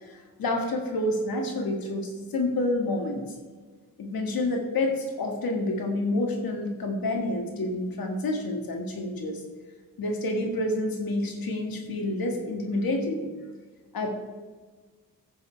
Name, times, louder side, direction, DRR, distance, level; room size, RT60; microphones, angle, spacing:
voice 1, 0.0-3.3 4.0-9.4 10.0-13.3 13.9-14.1, left 2 dB, 80° left, 3 dB, 1.8 m, -28 dB
11.0 x 8.6 x 4.5 m, 1.4 s
cardioid pair, 80°, 35 cm